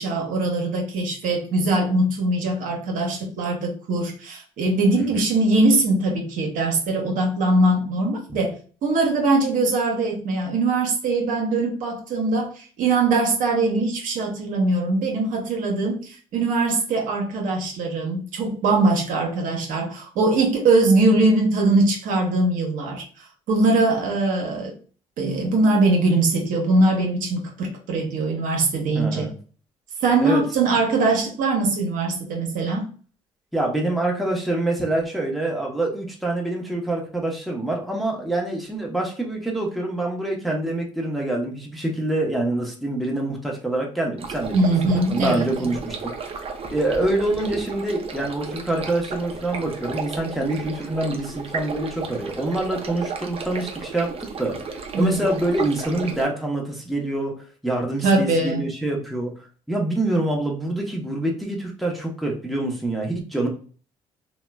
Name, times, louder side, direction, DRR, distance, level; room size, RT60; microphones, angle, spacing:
voice 1, 0.0-8.5 8.8-24.8 25.2-29.3 30.0-32.9 44.5-45.7 54.9-55.2 58.0-58.6, right 2 dB, 70° right, 1 dB, 0.8 m, -21 dB
voice 2, 28.9-29.3 30.2-30.4 33.5-46.3 46.7-54.1 54.4-54.6 55.0-57.3 57.6-59.3 59.7-63.5, right 2 dB, ahead, -1 dB, 0.8 m, -26 dB
sound 1, 44.2-56.2, right 5 dB, 45° right, 0.6 m, -34 dB
3.0 x 2.1 x 2.2 m, 0.41 s
supercardioid pair, 65°, 14 cm